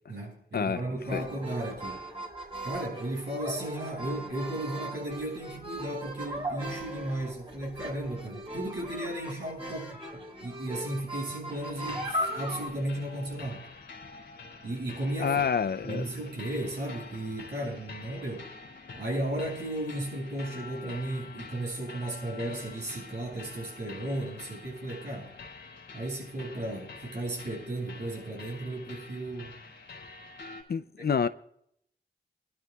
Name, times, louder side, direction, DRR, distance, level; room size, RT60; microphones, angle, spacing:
voice 1, 0.1-2.0 2.6-13.7 14.6-15.4 15.8-18.5 19.0-25.3 25.9-29.5 31.0-31.1, right 1 dB, 70° right, 7.4 m, -35 dB
sound 1, 1.0-12.7, equal, 30° right, 3.6 m, -38 dB
sound 2, 11.5-30.6, left 4 dB, 90° left, 2.8 m, -47 dB
voice 2, 15.2-16.0 30.7-31.3, left 6 dB, 60° left, 0.5 m, -27 dB
28.0 x 12.0 x 2.4 m
cardioid pair, 55°, 18 cm